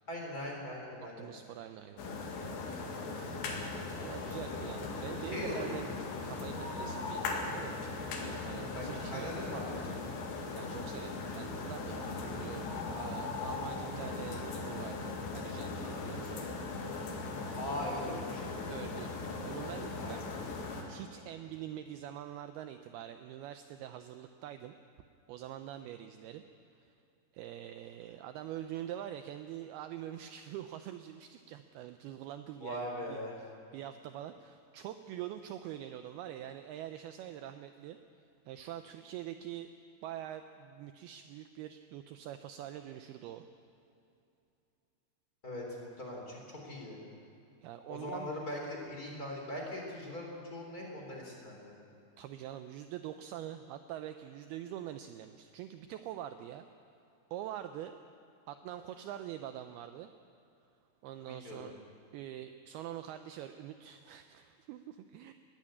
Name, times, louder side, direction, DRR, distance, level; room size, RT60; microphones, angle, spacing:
voice 1, 0.1-1.3 4.3-4.7 5.3-5.9 8.7-10.0 17.5-18.6 20.0-20.3 32.6-33.4 45.4-47.0 47.9-51.7 61.2-61.7, left 1 dB, 25° left, -1 dB, 3.3 m, -41 dB
voice 2, 1.2-2.3 3.1-3.4 4.0-5.9 6.2-9.3 10.6-16.5 18.7-19.1 19.4-20.2 20.9-24.7 25.3-26.4 26.7-26.9 27.3-33.2 33.7-38.0 38.5-39.7 40.0-43.4 47.6-48.3 52.2-56.7 57.3-58.0 58.5-60.1 61.0-61.8 62.1-65.3, right 11 dB, 80° right, 9 dB, 2.3 m, -44 dB
sound 1, 2.0-20.8, left 3 dB, 80° left, 4.2 m, -39 dB
20.5 x 15.0 x 8.7 m, 2.6 s
omnidirectional pair, 5.0 m